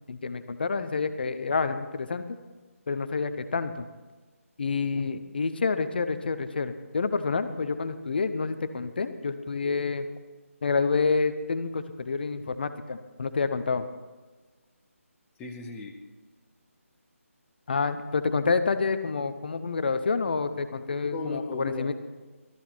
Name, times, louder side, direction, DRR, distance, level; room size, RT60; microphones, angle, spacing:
voice 1, 0.1-2.3 2.9-3.9 4.6-10.1 10.6-13.8 17.7-21.9, left 4 dB, 40° left, 11 dB, 0.8 m, -28 dB
voice 2, 15.4-15.9 21.1-21.9, left 3 dB, 10° left, 1 dB, 0.9 m, -36 dB
15.0 x 13.5 x 4.4 m, 1.3 s
figure-of-eight pair, 155°, 8 cm